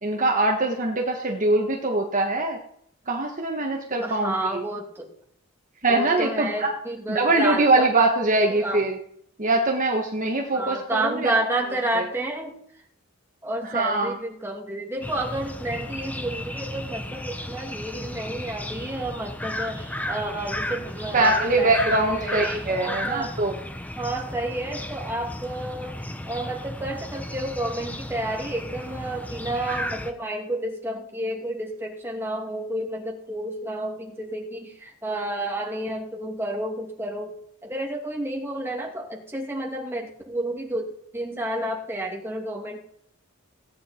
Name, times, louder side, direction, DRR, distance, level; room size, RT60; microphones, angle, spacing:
voice 1, 0.0-2.6 3.1-4.3 5.8-6.7 7.1-9.0 9.4-11.3 13.7-14.1 21.1-23.5, right 2 dB, 40° right, 1 dB, 1.4 m, -22 dB
voice 2, 4.0-5.1 5.9-7.9 8.5-8.8 10.5-12.6 13.4-22.4 22.7-23.3 24.0-26.0 26.3-37.4 37.6-40.9 41.1-42.8, right 1 dB, 10° right, -1 dB, 2.6 m, -30 dB
sound 1, 15.0-30.1, left 1 dB, 10° left, 0.9 m, -34 dB
17.0 x 9.5 x 4.4 m, 0.68 s
head